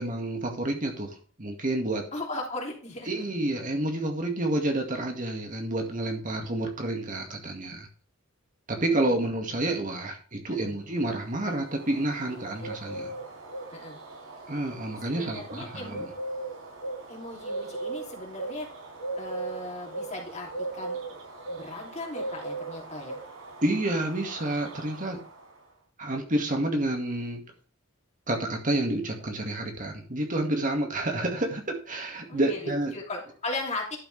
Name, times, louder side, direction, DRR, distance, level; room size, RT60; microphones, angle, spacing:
voice 1, 0.0-2.1 3.1-7.9 8.7-13.1 14.5-16.1 23.6-25.2 26.0-27.4 28.3-33.0, right 1 dB, 40° right, 3 dB, 2.0 m, -29 dB
voice 2, 2.1-3.2 8.7-8.9 10.5-10.7 13.7-14.0 15.0-16.0 17.1-18.7 19.2-21.0 21.5-23.2 31.2-31.4 32.3-34.0, left 2 dB, 35° left, -1 dB, 3.0 m, -37 dB
Bird, 11.0-25.7, right 2 dB, 85° right, 4.7 m, -39 dB
11.5 x 6.8 x 3.4 m, 0.41 s
head